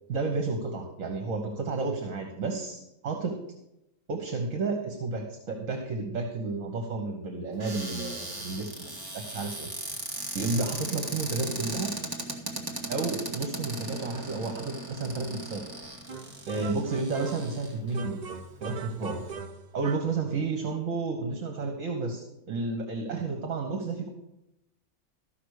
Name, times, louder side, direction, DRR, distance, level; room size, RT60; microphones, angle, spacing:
voice 1, 0.1-3.4 4.1-9.7 10.3-11.9 12.9-15.6 16.5-18.2 18.6-19.2 19.7-24.1, right 3 dB, 60° right, 3 dB, 1.6 m, -31 dB
Cupboard open or close, 7.6-18.0 18.6-18.7 19.0-19.3, right 2 dB, 15° right, 1.4 m, -38 dB
sound 1, 16.1-17.6 17.9-20.2, right 4 dB, 45° right, 0.6 m, -40 dB
13.5 x 6.0 x 6.5 m, 0.87 s
omnidirectional pair, 1.5 m